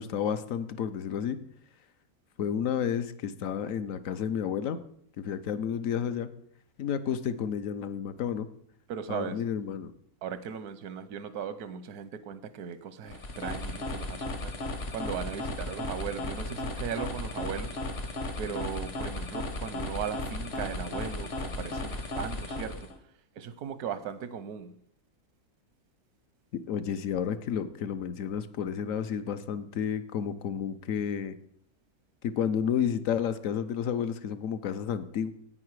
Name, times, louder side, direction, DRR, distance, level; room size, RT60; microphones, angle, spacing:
voice 1, 0.0-1.4 2.4-4.8 5.2-6.3 6.8-8.5 9.1-9.9 26.7-31.4 32.2-35.3, left 8 dB, 70° left, 12 dB, 1.0 m, -31 dB
voice 2, 8.9-9.4 10.2-17.8 18.4-22.9 23.4-24.7, right 8 dB, 85° right, 13 dB, 1.3 m, -38 dB
sound 1, 13.0-23.0, left 2 dB, 45° left, 1.3 m, -35 dB
9.7 x 8.9 x 4.7 m, 0.64 s
omnidirectional pair, 1.6 m